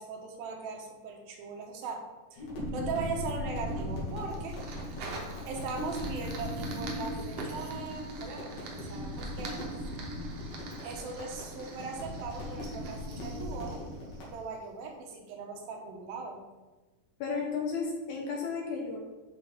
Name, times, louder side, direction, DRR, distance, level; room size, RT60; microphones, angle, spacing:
voice 1, 0.0-2.0 2.3-2.5 2.7-4.6 5.5-9.6 10.8-13.8 14.2-16.4, right 4 dB, 85° right, 2 dB, 2.8 m, -39 dB
sound 1, 2.4-14.3, left 1 dB, 90° left, 4.0 m, -38 dB
Fire, 3.3-14.7, right 3 dB, 65° right, 1.7 m, -47 dB
voice 2, 17.2-19.0, left 5 dB, 70° left, -1 dB, 2.0 m, -33 dB
11.5 x 4.0 x 3.6 m, 1.2 s
omnidirectional pair, 4.2 m